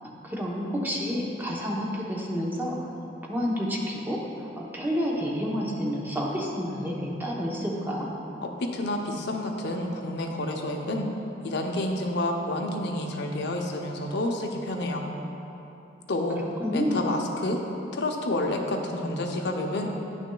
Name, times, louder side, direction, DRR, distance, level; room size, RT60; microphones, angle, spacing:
voice 1, 0.0-3.0 3.3-8.1 16.6-17.1, equal, 10° right, -3 dB, 0.8 m, -29 dB
voice 2, 8.4-11.1 11.4-15.1 16.1-16.4 16.7-17.6 17.9-19.9, left 1 dB, 65° left, 2 dB, 0.7 m, -29 dB
10.0 x 6.1 x 2.3 m, 2.9 s
head